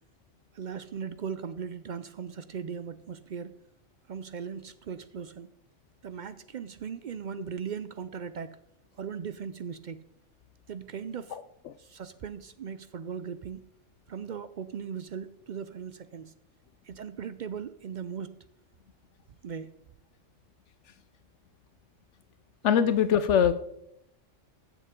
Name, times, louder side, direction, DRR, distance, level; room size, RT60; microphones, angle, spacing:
voice 1, 0.5-3.6 4.1-5.5 6.0-8.6 9.0-10.0 10.7-11.4 11.8-13.7 14.1-16.3 16.8-18.4 19.4-19.7, right 7 dB, 65° right, 13 dB, 0.4 m, -38 dB
voice 2, 11.3-11.7 22.6-23.5, left 8 dB, 75° left, 12 dB, 0.9 m, -23 dB
15.0 x 7.1 x 3.7 m, 0.77 s
omnidirectional pair, 1.3 m